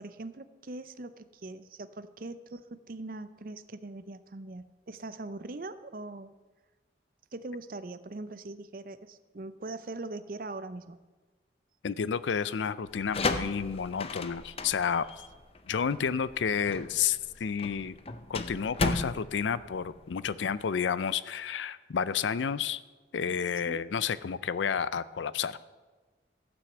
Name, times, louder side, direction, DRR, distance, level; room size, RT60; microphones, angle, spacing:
voice 1, 0.0-6.3 7.3-11.0 23.7-23.8, right 2 dB, 50° right, 13 dB, 0.6 m, -41 dB
voice 2, 11.8-15.1 15.7-18.0 18.3-22.8 23.1-25.7, left 7 dB, 90° left, 16 dB, 0.5 m, -30 dB
sound 1, 12.9-20.5, left 3 dB, 30° left, 0.6 m, -35 dB
15.0 x 6.2 x 8.0 m, 1.3 s
head